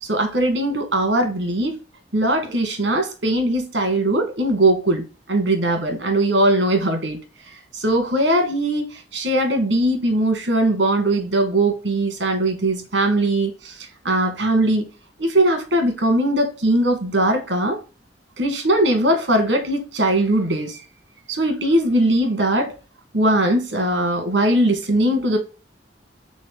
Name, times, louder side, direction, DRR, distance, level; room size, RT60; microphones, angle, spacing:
voice 1, 0.0-1.7 2.1-7.2 7.7-14.9 15.2-17.8 18.4-20.8 21.3-22.7 23.1-25.4, right 1 dB, 85° right, 1.6 m, -20 dB
4.1 x 3.6 x 3.5 m
head